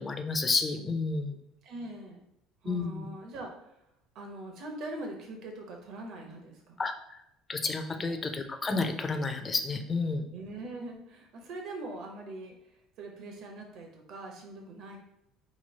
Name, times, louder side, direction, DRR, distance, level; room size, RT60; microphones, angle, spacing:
voice 1, 0.0-1.3 2.7-3.1 6.8-6.9 7.5-10.2, left 3 dB, 20° left, 6 dB, 0.3 m, -30 dB
voice 2, 1.6-2.2 2.6-3.5 4.1-6.8 7.9-8.2 10.3-12.6 13.0-15.0, right 2 dB, 55° right, 2 dB, 0.8 m, -42 dB
3.0 x 2.3 x 4.2 m, 0.83 s
cardioid pair, 140°, 0 cm